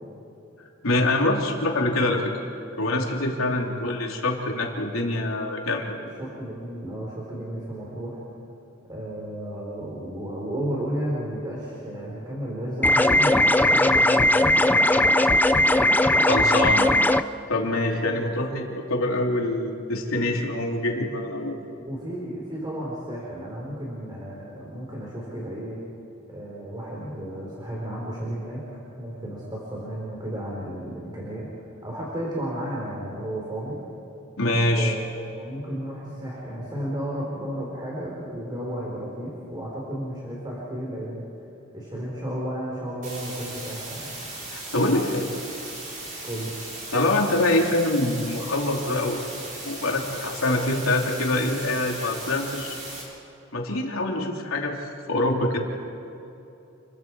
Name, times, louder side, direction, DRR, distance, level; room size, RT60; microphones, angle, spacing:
voice 1, 0.8-2.3 2.7-6.0 15.9-16.9 17.5-21.6 34.4-35.0 44.5-45.2 46.9-49.2 49.6-52.7 53.5-55.6, left 2 dB, 90° left, 0 dB, 3.2 m, -25 dB
voice 2, 3.6-3.9 6.0-8.2 8.9-13.3 13.7-14.7 21.9-25.8 26.3-28.6 29.0-31.5 31.8-33.8 34.7-41.2 41.7-44.1 46.2-46.5, equal, 20° right, -5 dB, 4.2 m, -33 dB
sound 1, 12.8-17.2, left 1 dB, 10° left, 0.5 m, -18 dB
sound 2, 43.0-53.0, right 2 dB, 40° right, 7.3 m, -37 dB
29.5 x 23.0 x 4.8 m, 2.9 s
head